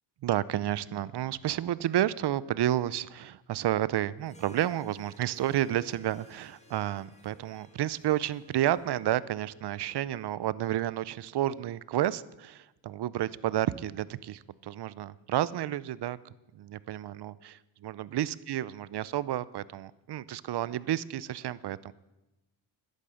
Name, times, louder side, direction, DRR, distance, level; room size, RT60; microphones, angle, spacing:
voice 1, 0.2-16.2 16.5-21.9, right 12 dB, 60° right, 19 dB, 0.7 m, -31 dB
Harp, 4.2-9.9, equal, 15° left, 2.2 m, -59 dB
12.5 x 11.0 x 7.8 m, 1.0 s
cardioid pair, 100°, 46 cm